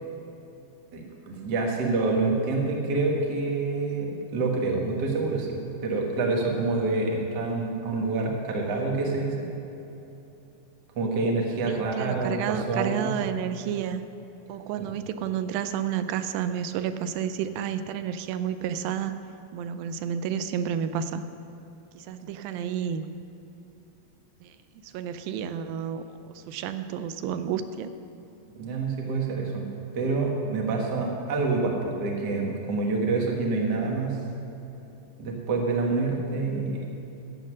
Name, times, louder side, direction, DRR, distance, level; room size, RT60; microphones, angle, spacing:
voice 1, 0.9-5.6 5.8-9.5 10.9-13.1 14.8-14.9 28.6-29.7 29.9-34.2 35.2-36.9, right 3 dB, 65° right, 0 dB, 1.0 m, -27 dB
voice 2, 11.7-14.0 14.5-19.2 19.5-21.2 22.0-23.1 24.4-24.5 24.8-27.9 33.8-33.9, right 8 dB, 85° right, 10 dB, 2.3 m, -31 dB
12.0 x 7.8 x 6.2 m, 2.9 s
omnidirectional pair, 4.2 m